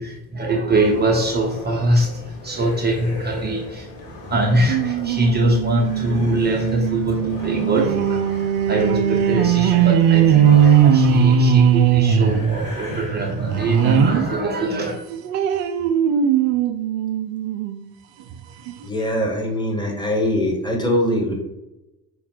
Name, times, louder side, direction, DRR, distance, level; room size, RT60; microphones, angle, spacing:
voice 1, 0.0-14.9, right 1 dB, 20° right, -1 dB, 0.7 m, -23 dB
sound 1, 0.7-14.4, left 1 dB, 55° left, 1.0 m, -37 dB
sound 2, 4.7-14.3 14.7-17.8 18.3-18.4 18.7-18.8, right 8 dB, 60° right, 0.5 m, -19 dB
voice 2, 18.8-21.3, left 1 dB, 10° left, -1 dB, 1.2 m, -22 dB
5.1 x 2.0 x 3.9 m, 0.91 s
figure-of-eight pair, 50°, 48 cm